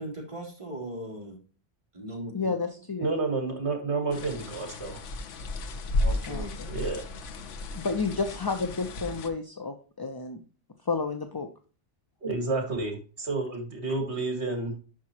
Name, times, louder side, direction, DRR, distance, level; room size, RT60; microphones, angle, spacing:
voice 1, 0.0-1.4 1.9-2.5 6.0-6.5, right 1 dB, 25° right, -3 dB, 3.4 m, -38 dB
voice 2, 2.3-3.1 6.3-6.7 7.7-10.4 10.8-11.5, left 4 dB, 25° left, 5 dB, 0.6 m, -31 dB
voice 3, 3.0-5.0 6.7-7.1 12.2-14.8, right 3 dB, 65° right, 4 dB, 2.2 m, -30 dB
sound 1, 4.1-9.3, left 2 dB, 85° left, 1.2 m, -33 dB
10.5 x 6.0 x 3.0 m, 0.38 s
omnidirectional pair, 1.2 m